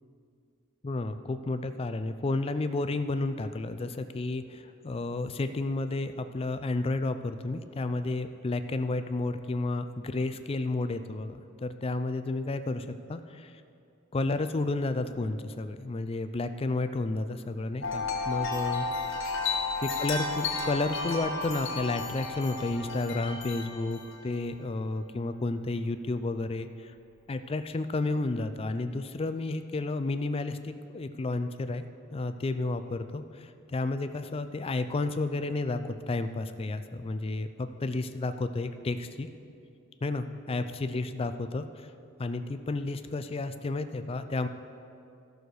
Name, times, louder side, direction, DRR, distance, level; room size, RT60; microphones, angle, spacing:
voice 1, 0.8-13.5 14.1-18.9 19.2-19.3 19.8-26.9 27.3-31.8 32.1-39.3 40.0-41.9 42.2-44.5, left 2 dB, 25° left, 10 dB, 0.4 m, -31 dB
Wind chime, 17.8-24.3, left 4 dB, 60° left, 1.4 m, -33 dB
14.0 x 6.5 x 4.7 m, 2.5 s
head